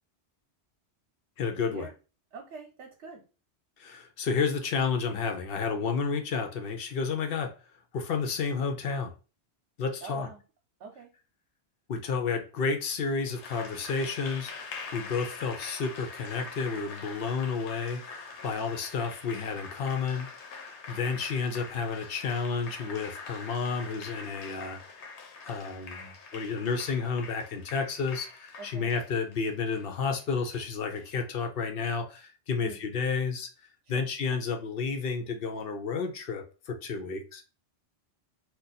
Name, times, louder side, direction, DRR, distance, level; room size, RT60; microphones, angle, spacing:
voice 1, 1.4-1.9 3.8-7.5 7.9-9.1 9.8-10.3 11.9-20.3 20.9-24.8 25.4-33.5 33.9-37.4, left 5 dB, 65° left, 5 dB, 0.7 m, -31 dB
voice 2, 2.3-3.2 10.0-10.4 10.8-11.1 28.6-28.9 32.6-32.8 33.9-34.0, right 4 dB, 80° right, 1 dB, 1.0 m, -44 dB
Applause, 13.2-31.1, left 4 dB, 85° left, 0.9 m, -44 dB
2.5 x 2.2 x 3.9 m, 0.34 s
omnidirectional pair, 1.2 m